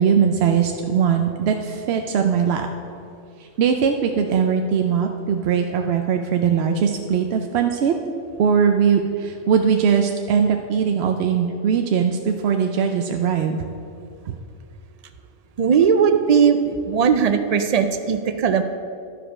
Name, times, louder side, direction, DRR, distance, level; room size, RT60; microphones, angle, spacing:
voice 1, 0.0-2.7 3.4-7.9 8.4-13.6 14.3-14.4, right 7 dB, 65° right, 4 dB, 0.8 m, -20 dB
voice 2, 15.6-16.6 16.9-18.6, right 7 dB, 85° right, 8 dB, 0.3 m, -18 dB
12.0 x 5.1 x 5.9 m, 2.5 s
omnidirectional pair, 1.3 m